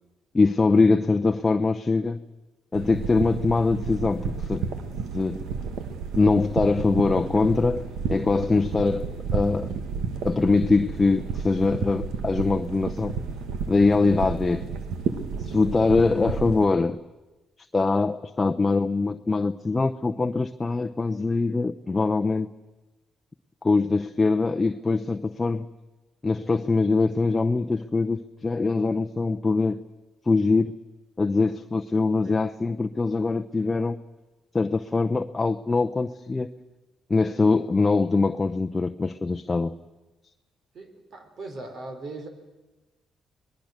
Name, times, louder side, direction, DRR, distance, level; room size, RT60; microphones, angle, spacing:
voice 1, 0.3-2.2 2.7-4.7 5.1-5.5 6.2-9.7 10.2-13.2 13.7-14.7 15.4-17.0 17.7-22.5 23.6-25.7 26.2-29.8 30.3-30.7 31.2-34.0 34.5-36.5 37.1-39.7, left 3 dB, 25° left, 0.7 m, -23 dB
sound 1, 2.7-16.7, right 6 dB, 85° right, 1.8 m, -32 dB
voice 2, 40.7-42.3, right 2 dB, 55° right, 4.3 m, -39 dB
26.0 x 20.5 x 6.6 m
cardioid pair, 90°, 0 cm